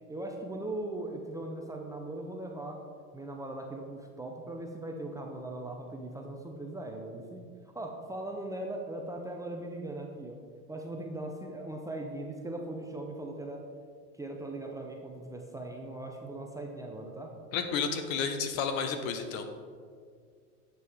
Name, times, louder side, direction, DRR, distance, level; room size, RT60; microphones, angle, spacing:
voice 1, 0.1-2.8 3.1-10.4 10.7-13.6 14.2-17.3, right 2 dB, 5° right, 1 dB, 0.6 m, -39 dB
voice 2, 17.5-19.5, left 6 dB, 60° left, 7 dB, 1.2 m, -31 dB
9.7 x 7.6 x 3.5 m, 2.1 s
hypercardioid pair, 115°, 45 cm